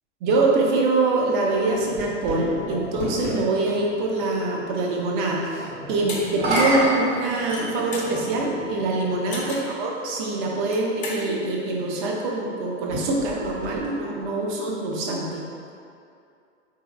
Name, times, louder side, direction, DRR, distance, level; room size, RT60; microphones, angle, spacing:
voice 1, 0.2-15.4, right 2 dB, 45° right, -2 dB, 0.6 m, -24 dB
sound 1, 1.6-3.4 6.2-8.0 8.9-9.0 12.8-14.3, right 1 dB, 60° right, 1.3 m, -28 dB
sound 2, 1.6-9.5, equal, 85° right, 0.9 m, -41 dB
sound 3, 6.1-6.2 6.5-6.8 7.3-8.1 9.3-9.7 10.6-11.2, left 3 dB, 25° left, 0.5 m, -34 dB
3.7 x 2.7 x 2.4 m, 2.5 s
figure-of-eight pair, 100°, 36 cm